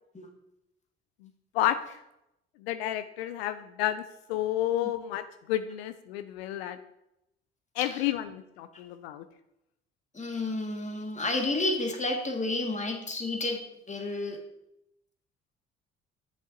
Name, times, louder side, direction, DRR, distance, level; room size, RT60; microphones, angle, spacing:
voice 1, 1.5-2.0 2.6-4.0 4.3-6.8 7.8-9.2, left 12 dB, 90° left, 11 dB, 0.5 m, -31 dB
voice 2, 10.1-13.6 13.9-14.4, left 2 dB, 25° left, 3 dB, 2.0 m, -30 dB
7.6 x 7.4 x 3.9 m, 0.85 s
hypercardioid pair, 60°, 30 cm